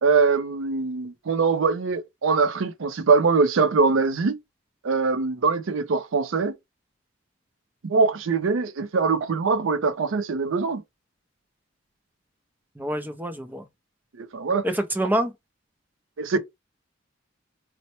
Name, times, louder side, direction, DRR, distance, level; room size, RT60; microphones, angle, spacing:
voice 1, 0.0-4.4 4.8-6.5 7.8-10.8 14.2-14.6 16.2-16.4, right 4 dB, 80° right, 0.5 m, -22 dB
voice 2, 12.8-13.6 14.6-15.3, right 1 dB, 10° right, 0.4 m, -26 dB
4.2 x 2.1 x 2.9 m
head